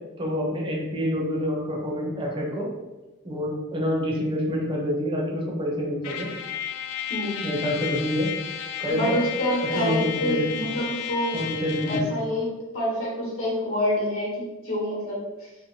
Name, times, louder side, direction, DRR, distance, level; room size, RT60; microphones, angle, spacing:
voice 1, 0.2-2.7 3.2-6.3 7.4-8.3 8.8-9.2 9.7-10.6 11.3-12.0, equal, 20° right, -3 dB, 0.6 m, -27 dB
Trumpet, 6.0-12.2, left 9 dB, 85° left, 0.3 m, -33 dB
voice 2, 7.1-7.4 8.9-11.4 11.9-12.5 12.7-14.3 14.6-15.2, equal, 65° left, -6 dB, 1.0 m, -26 dB
2.9 x 2.1 x 2.7 m, 1.1 s
head